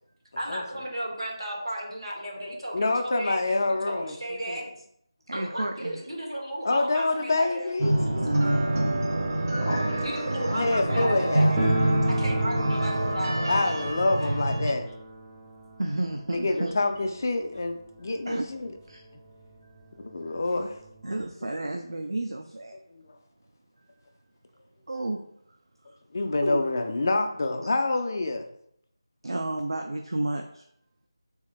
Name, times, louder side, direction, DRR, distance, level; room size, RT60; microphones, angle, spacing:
voice 1, 0.4-3.4 3.7-4.7 5.3-7.7 10.0-11.6 12.1-13.6, equal, 85° right, -2 dB, 1.5 m, -34 dB
voice 2, 2.7-4.6 6.6-8.2 9.6-10.1 10.5-11.5 13.5-14.9 16.3-18.7 20.0-20.7 22.9-23.0 26.1-28.5, left 2 dB, 40° left, 5 dB, 0.4 m, -27 dB
voice 3, 5.3-6.0 8.2-9.1 9.9-10.0 14.2-14.4 14.6-14.7 15.8-16.7 18.3-18.5 18.9-19.0 19.6-19.8 20.2-20.6 21.0-22.8 23.8-23.9 24.9-25.2 26.4-26.6 27.6-27.7 29.2-30.6, right 1 dB, 65° right, 4 dB, 0.4 m, -31 dB
sound 1, 7.8-14.7, right 1 dB, 45° right, 0.8 m, -26 dB
sound 2, 11.6-18.3 18.5-18.6 18.9-19.0 19.7-19.8 20.1-21.3, right 1 dB, 10° right, 0.5 m, -34 dB
3.4 x 3.2 x 3.1 m, 0.72 s
figure-of-eight pair, 160°, 3 cm